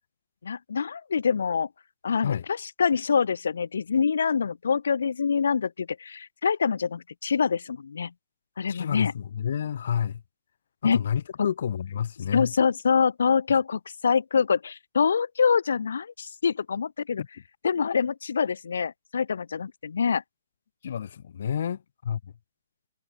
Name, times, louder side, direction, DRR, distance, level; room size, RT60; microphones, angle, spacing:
voice 1, 0.4-1.7 2.0-8.1 8.6-9.1 10.8-11.0 11.4-11.5 12.3-17.2 17.6-20.2, left 6 dB, 80° left, 0.7 m, -25 dB
voice 2, 8.7-10.2 10.8-12.5 17.2-17.3 20.8-22.3, left 8 dB, 65° left, 1.1 m, -30 dB
hypercardioid pair, 145°, 0 cm